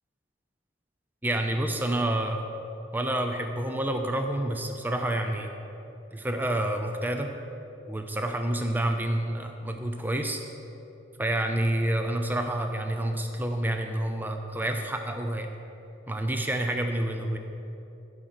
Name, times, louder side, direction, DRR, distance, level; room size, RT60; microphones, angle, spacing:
voice 1, 1.2-2.4 2.9-5.5 6.1-7.3 7.9-10.4 11.2-15.5 16.1-17.4, right 1 dB, 10° right, 5 dB, 0.6 m, -28 dB
15.0 x 6.5 x 5.6 m, 2.9 s
head